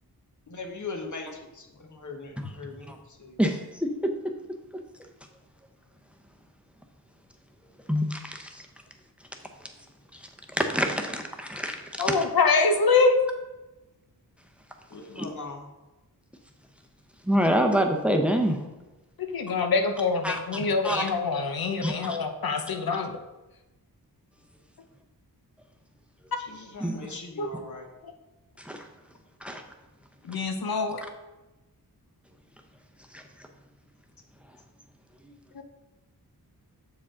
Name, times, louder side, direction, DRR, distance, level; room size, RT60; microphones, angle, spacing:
voice 1, 0.5-2.9 3.2-3.4 14.9-15.6 26.5-27.9, left 3 dB, 50° left, 3 dB, 1.1 m, -40 dB
voice 2, 3.4-4.3 7.9-8.6 10.1-12.2 15.2-15.3 17.2-18.7 20.2-21.0 21.8-22.2 26.8-27.2 28.6-28.8 29.4-29.6 33.1-33.2 35.2-35.3, equal, 5° right, 4 dB, 0.7 m, -27 dB
voice 3, 12.0-13.2 19.2-23.1 27.4-27.5 28.0-28.1 30.3-31.0 35.5-35.6, left 4 dB, 70° left, 6 dB, 0.8 m, -25 dB
7.1 x 4.7 x 3.7 m, 1.1 s
wide cardioid pair, 75°, 38 cm